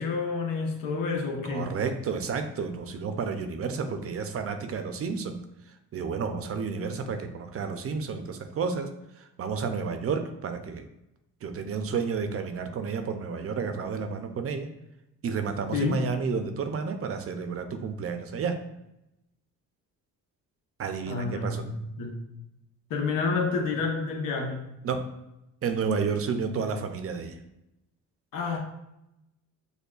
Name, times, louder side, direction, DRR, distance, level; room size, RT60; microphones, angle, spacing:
voice 1, 0.0-1.7 15.7-16.0 21.1-22.2 22.9-24.6 28.3-28.6, left 4 dB, 85° left, 2 dB, 0.9 m, -29 dB
voice 2, 1.5-5.4 5.9-8.9 9.2-10.9 11.4-14.7 15.2-18.6 20.8-21.6 24.8-25.1 25.6-27.4, right 5 dB, 45° right, 7 dB, 0.5 m, -31 dB
6.8 x 2.3 x 2.3 m, 0.88 s
cardioid pair, 110°, 32 cm